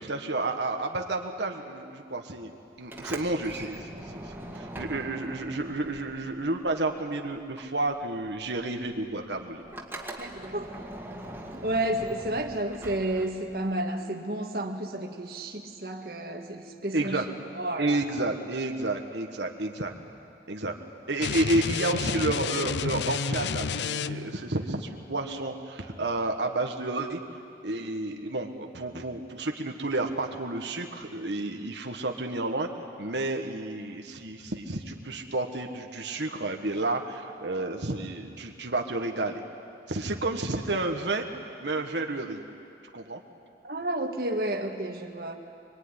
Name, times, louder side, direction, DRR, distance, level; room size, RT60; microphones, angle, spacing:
voice 1, 0.0-2.5 2.8-3.9 4.5-9.6 16.9-17.2 17.8-19.9 20.5-20.7 21.1-27.2 27.6-32.7 33.0-39.4 39.9-41.2 41.6-42.4 42.9-43.2, right 2 dB, 85° right, 3 dB, 1.7 m, -30 dB
Sliding door, 2.8-7.1 7.3-13.7, right 1 dB, 10° right, 2.0 m, -42 dB
voice 2, 10.2-10.8 11.5-17.2 17.6-18.0 43.6-45.4, right 1 dB, 55° right, 3 dB, 1.8 m, -31 dB
sound 1, 21.2-24.4, left 5 dB, 80° left, 0.6 m, -30 dB
25.5 x 23.0 x 9.9 m, 2.5 s
head